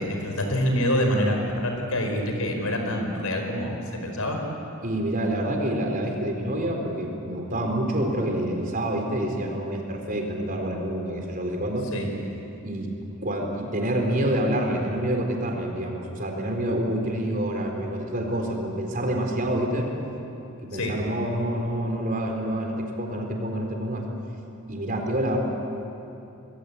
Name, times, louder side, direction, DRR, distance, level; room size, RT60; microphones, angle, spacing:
voice 1, 0.0-4.4 11.9-12.1 20.7-20.9, equal, 90° left, 3 dB, 4.9 m, -26 dB
voice 2, 4.8-11.9 12.6-12.9 13.2-19.9 20.6-24.1 24.7-25.4, right 1 dB, 40° right, 2 dB, 4.1 m, -27 dB
26.5 x 20.5 x 8.6 m, 2.9 s
head